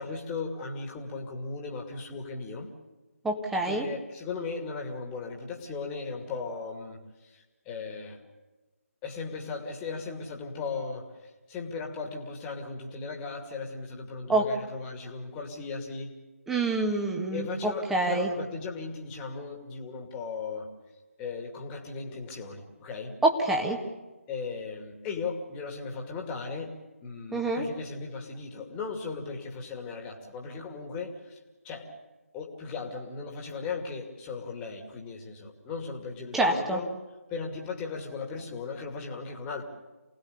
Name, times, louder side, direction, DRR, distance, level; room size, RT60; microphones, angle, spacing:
voice 1, 0.0-2.7 3.6-8.2 9.0-16.1 17.3-20.7 21.2-23.1 24.3-26.7 27.0-31.4 31.6-31.9 32.3-36.9 37.3-39.6, left 4 dB, 10° left, 1 dB, 2.4 m, -37 dB
voice 2, 3.2-3.9 14.3-14.5 16.5-18.3 23.2-23.8 27.3-27.7 36.3-36.8, right 2 dB, 5° right, 1 dB, 1.7 m, -26 dB
28.0 x 19.0 x 6.9 m, 1.2 s
figure-of-eight pair, 155°, 8 cm